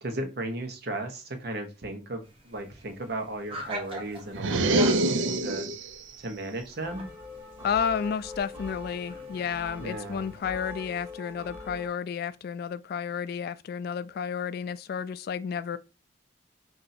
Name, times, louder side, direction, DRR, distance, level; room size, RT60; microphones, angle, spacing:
voice 1, 0.0-5.7 6.2-7.1 9.8-10.3, right 2 dB, 60° right, 1.0 m, -36 dB
sound 1, 2.2-10.4, equal, 30° right, 1.0 m, -43 dB
sound 2, 4.3-6.0, right 2 dB, 90° right, 0.5 m, -25 dB
sound 3, 6.8-11.9, left 2 dB, 15° right, 1.2 m, -43 dB
voice 2, 7.6-15.8, left 7 dB, 55° left, 0.3 m, -31 dB
3.8 x 2.7 x 4.2 m
head